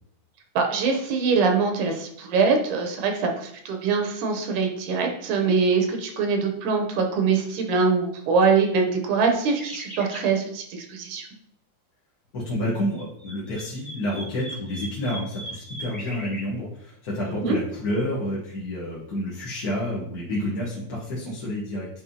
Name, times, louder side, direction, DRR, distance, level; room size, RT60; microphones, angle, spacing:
voice 1, 0.6-11.3 17.3-17.6, right 4 dB, 80° right, 3 dB, 2.3 m, -23 dB
sound 1, 9.5-10.3 12.7-16.4, right 1 dB, ahead, 0.8 m, -39 dB
voice 2, 12.3-21.9, left 1 dB, 50° left, -6 dB, 1.1 m, -29 dB
9.3 x 3.5 x 2.8 m, 0.72 s
omnidirectional pair, 3.5 m